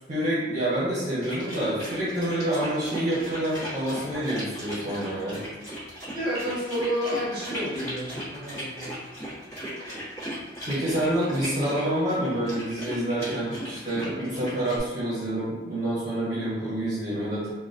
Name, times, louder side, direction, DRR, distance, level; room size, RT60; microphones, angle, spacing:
voice 1, 0.1-5.4 10.6-17.5, right 1 dB, 45° right, -10 dB, 0.9 m, -27 dB
sound 1, 1.2-14.8, equal, 20° left, 1.2 m, -37 dB
voice 2, 6.1-9.0, equal, 25° right, -7 dB, 1.3 m, -30 dB
3.8 x 2.3 x 2.5 m, 1.2 s
head